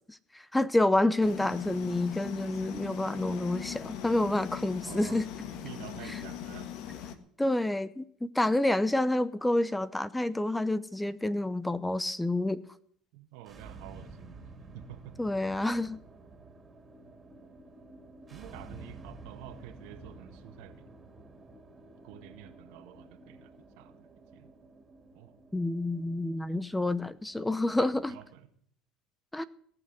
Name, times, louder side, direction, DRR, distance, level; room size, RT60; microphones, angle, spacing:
voice 1, 0.1-5.3 7.4-12.6 15.2-16.0 25.5-28.2 29.3-29.4, left 1 dB, 10° left, 15 dB, 0.8 m, -28 dB
sound 1, 1.2-7.1, left 9 dB, 65° left, 1.5 m, -40 dB
voice 2, 4.9-5.2 5.6-6.7 13.1-14.5 14.7-15.2 18.3-20.9 22.0-24.5 25.1-25.3 26.5-26.6 27.5-28.5, right 12 dB, 70° right, 7 dB, 1.7 m, -49 dB
sound 2, 13.4-28.3, right 3 dB, 30° right, 2.5 m, -51 dB
17.5 x 6.5 x 9.2 m, 0.63 s
hypercardioid pair, 75°, 0 cm